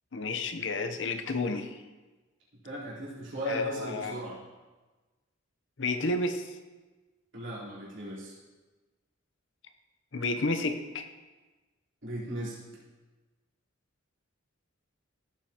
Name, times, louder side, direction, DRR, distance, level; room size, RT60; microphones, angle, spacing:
voice 1, 0.1-1.7 3.5-4.1 5.8-6.4 10.1-11.0, left 2 dB, 60° left, 7 dB, 0.8 m, -31 dB
voice 2, 2.6-4.4 7.3-8.3 12.0-12.6, equal, 60° right, -7 dB, 3.8 m, -36 dB
15.5 x 8.3 x 2.9 m, 1.2 s
head